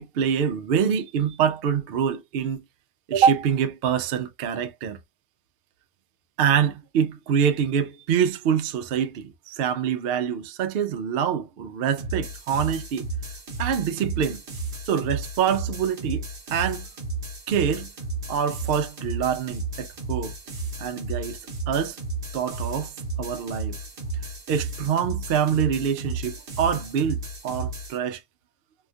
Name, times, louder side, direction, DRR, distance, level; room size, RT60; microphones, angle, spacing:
voice 1, 0.0-2.6 3.1-5.0 6.4-13.1 13.6-14.4 14.9-16.2 16.5-16.9 17.5-17.9 18.3-20.3 20.8-21.4 21.7-22.0 22.3-23.8 24.5-28.2, right 8 dB, 65° right, 0.6 m, -25 dB
sound 1, 12.0-28.0, right 2 dB, 50° right, 0.9 m, -33 dB
2.7 x 2.3 x 2.6 m
omnidirectional pair, 1.5 m